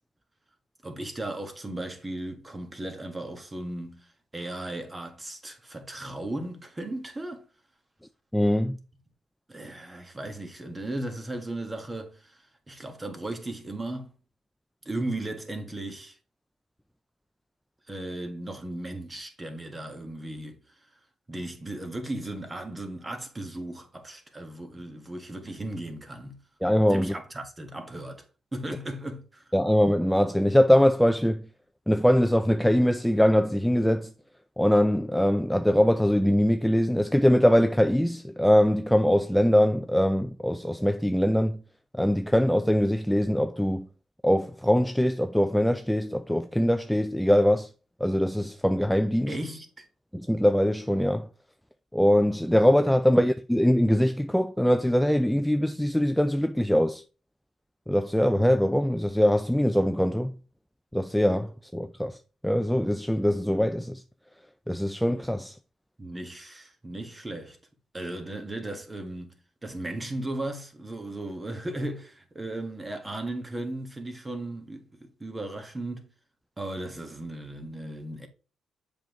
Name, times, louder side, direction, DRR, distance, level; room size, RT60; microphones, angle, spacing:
voice 1, 0.8-7.4 9.5-14.1 14.8-16.2 17.9-20.6 21.3-26.4 26.9-28.2 28.5-29.5 49.3-49.9 52.9-53.2 66.0-67.6 67.9-76.1 76.6-78.3, right 1 dB, 20° right, 1.6 m, -36 dB
voice 2, 8.3-8.8 26.6-27.1 29.5-31.4 31.9-34.1 34.6-41.6 41.9-43.9 44.2-47.7 48.0-49.3 50.1-51.3 51.9-57.0 57.9-60.3 60.9-62.2 62.4-64.0 64.7-65.6, equal, ahead, 0.4 m, -22 dB
7.4 x 5.4 x 3.1 m
cardioid pair, 90°, 0 cm